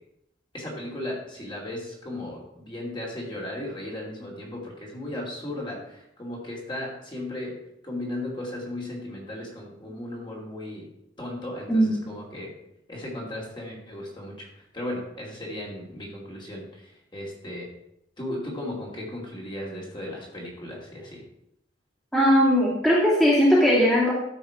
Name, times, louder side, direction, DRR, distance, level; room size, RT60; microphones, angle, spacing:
voice 1, 0.5-7.6 7.8-10.9 11.2-12.5 12.9-14.5 14.7-16.8 17.1-17.7 18.2-21.2, left 1 dB, 25° left, -3 dB, 2.6 m, -36 dB
voice 2, 22.1-24.1, equal, ahead, -7 dB, 2.2 m, -19 dB
13.0 x 5.6 x 4.9 m, 0.78 s
head